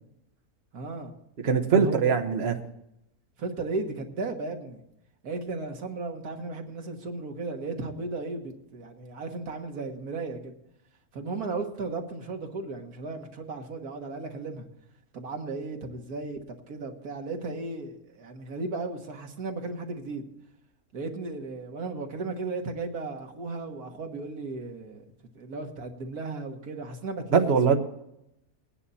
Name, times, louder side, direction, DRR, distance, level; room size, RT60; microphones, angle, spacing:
voice 1, 0.7-1.1 1.7-2.2 3.4-4.8 5.2-10.5 11.1-14.7 15.1-20.2 20.9-25.0 25.4-27.8, right 3 dB, 85° right, 3 dB, 2.0 m, -35 dB
voice 2, 1.4-2.5 27.3-27.8, right 6 dB, 45° right, 5 dB, 1.3 m, -22 dB
20.0 x 9.8 x 4.2 m, 0.83 s
omnidirectional pair, 1.6 m